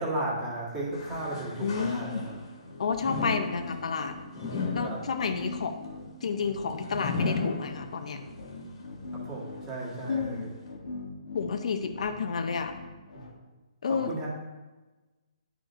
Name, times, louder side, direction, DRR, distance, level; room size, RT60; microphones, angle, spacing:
voice 1, 0.0-2.2 4.8-5.0 9.1-10.5 13.9-14.3, right 1 dB, 15° right, -5 dB, 1.6 m, -34 dB
sound 1, 0.8-13.3, left 3 dB, 85° left, 1.5 m, -43 dB
sound 2, 0.9-2.5 3.0-8.3 8.7-8.8 9.7-9.8, left 3 dB, 45° left, 1.4 m, -35 dB
voice 2, 1.6-2.2 2.8-4.1 4.7-5.8 6.2-8.2 10.1-10.5 11.3-12.7 13.8-14.1, left 5 dB, 60° left, 7 dB, 0.5 m, -30 dB
9.9 x 5.0 x 2.6 m, 1.2 s
hypercardioid pair, 165°, 4 cm